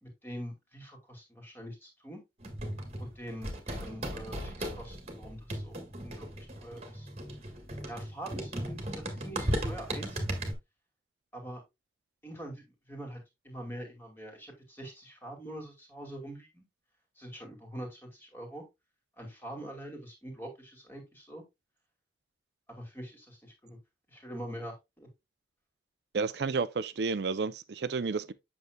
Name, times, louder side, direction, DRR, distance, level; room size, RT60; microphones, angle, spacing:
voice 1, 0.0-2.2 3.0-7.1 7.9-10.4 11.3-11.6 12.2-16.6 17.2-18.6 19.2-21.4 22.7-23.8 24.1-25.1, right 1 dB, 10° left, 2.2 m, -44 dB
sound 1, 2.4-10.5, right 1 dB, 35° right, 1.5 m, -36 dB
voice 2, 26.1-28.3, right 4 dB, 60° right, 0.5 m, -31 dB
8.0 x 6.4 x 2.2 m
head